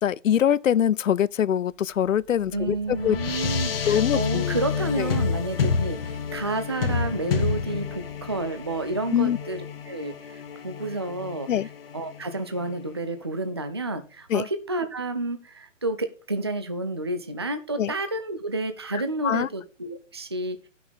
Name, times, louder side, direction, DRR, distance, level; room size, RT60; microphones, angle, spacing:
voice 1, 0.0-3.2 3.9-4.6 5.0-5.1 9.1-9.4 11.5-11.7 14.3-14.4 17.8-17.9 18.9-19.5, left 9 dB, 85° left, 0.6 m, -23 dB
sound 1, 2.0-12.8, left 5 dB, 50° left, 1.2 m, -29 dB
voice 2, 2.5-11.5 11.9-20.7, right 2 dB, 20° right, 0.4 m, -30 dB
10.5 x 6.0 x 5.3 m
hypercardioid pair, 165°, 38 cm